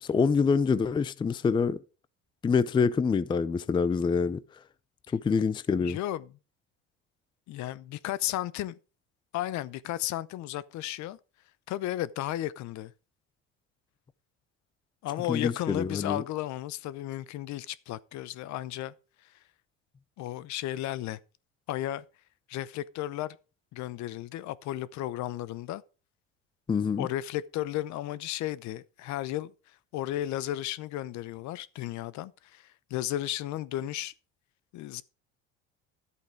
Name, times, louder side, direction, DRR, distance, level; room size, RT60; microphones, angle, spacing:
voice 1, 0.0-1.8 2.4-4.4 5.1-6.0 15.3-16.2 26.7-27.1, left 5 dB, 15° left, 0.4 m, -26 dB
voice 2, 5.8-6.3 7.5-8.8 9.3-11.2 11.7-12.9 15.0-18.9 20.2-21.2 21.7-22.0 22.5-23.4 23.7-25.8 27.0-29.5 29.9-34.1 34.7-35.0, left 14 dB, 60° left, 0.7 m, -34 dB
11.0 x 8.4 x 4.6 m
cardioid pair, 115°, 33 cm